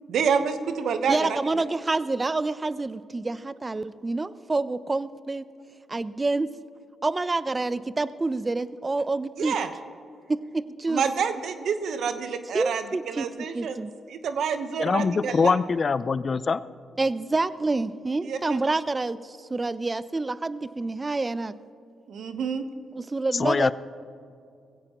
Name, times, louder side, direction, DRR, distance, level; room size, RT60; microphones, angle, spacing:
voice 1, 0.1-1.4 9.4-9.7 10.9-15.6 18.2-18.6 22.1-22.6, right 6 dB, 70° right, 9 dB, 1.0 m, -28 dB
voice 2, 1.1-5.5 5.9-6.5 7.0-9.6 10.3-11.0 12.5-13.3 13.5-13.9 17.0-21.6 22.9-23.7, right 3 dB, 30° right, 16 dB, 0.6 m, -27 dB
voice 3, 14.8-16.6 23.3-23.7, left 5 dB, 50° left, 17 dB, 0.5 m, -23 dB
20.0 x 16.5 x 3.0 m, 2.6 s
supercardioid pair, 45°, 0 cm